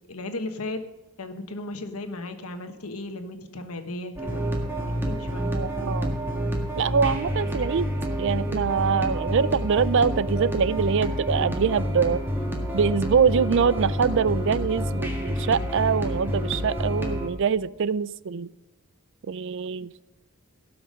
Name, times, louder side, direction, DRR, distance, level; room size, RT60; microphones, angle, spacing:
voice 1, 0.1-0.8 1.2-5.5, left 2 dB, 75° left, 8 dB, 1.3 m, -36 dB
sound 1, 4.2-17.3, equal, 10° right, 1.7 m, -28 dB
voice 2, 5.5-6.2 6.8-12.2 12.7-18.5 19.3-20.0, right 6 dB, 55° right, 18 dB, 0.4 m, -24 dB
17.5 x 6.0 x 5.1 m, 1.1 s
head